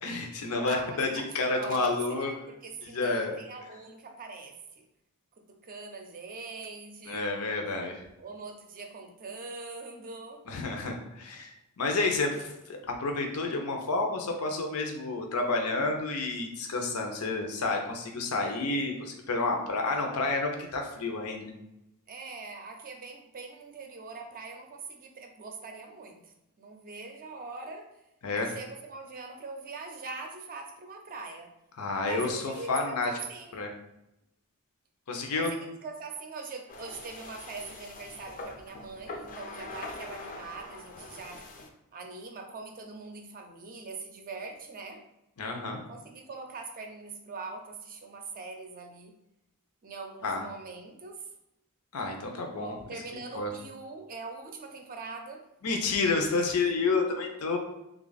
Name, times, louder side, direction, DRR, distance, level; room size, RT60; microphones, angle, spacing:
voice 1, 0.0-2.3 2.8-3.3 7.1-8.0 10.5-11.5 11.8-21.5 28.2-28.5 31.8-33.1 33.5-33.7 35.1-35.5 45.4-45.8 50.2-50.4 51.9-52.8 53.1-53.5 55.6-57.6, left 3 dB, 80° left, 3 dB, 0.6 m, -30 dB
voice 2, 0.6-4.6 5.6-7.3 8.2-10.4 22.1-27.9 28.4-31.5 32.1-33.6 35.3-41.4 41.9-45.0 45.9-49.1 49.8-51.2 52.5-55.4, right 4 dB, 40° right, 3 dB, 0.5 m, -42 dB
sound 1, 36.7-41.7, left 2 dB, 40° left, 0.4 m, -43 dB
3.3 x 2.4 x 3.9 m, 0.88 s
head